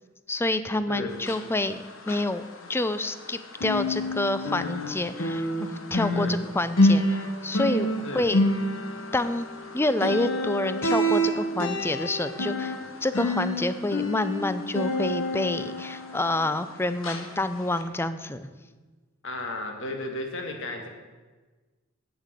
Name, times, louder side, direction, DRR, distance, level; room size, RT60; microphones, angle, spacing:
voice 1, 0.3-8.4 9.1-9.5 9.7-12.7 13.0-18.5, left 2 dB, 10° left, 12 dB, 0.5 m, -28 dB
voice 2, 0.9-1.2 6.1-6.4 8.0-8.3 19.2-20.9, left 2 dB, 65° left, 3 dB, 1.9 m, -34 dB
sound 1, 1.1-3.3 3.5-16.7 17.0-17.3 17.8-17.9, left 1 dB, 85° left, 1.4 m, -28 dB
8.8 x 8.4 x 8.1 m, 1.3 s
head